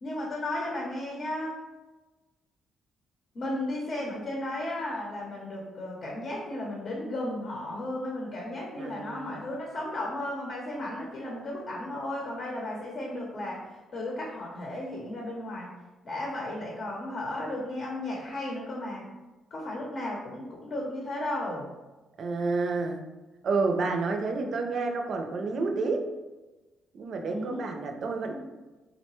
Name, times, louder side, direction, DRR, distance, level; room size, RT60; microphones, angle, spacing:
voice 1, 0.0-1.5 3.3-13.6 13.9-15.7 16.0-19.0 19.5-21.7 27.2-27.7, left 1 dB, 55° left, -2 dB, 0.7 m, -34 dB
voice 2, 8.8-9.5 22.2-23.0 23.4-26.1 26.9-28.4, right 3 dB, 60° right, 4 dB, 0.4 m, -29 dB
3.8 x 2.1 x 3.0 m, 1.1 s
cardioid pair, 90°, 0 cm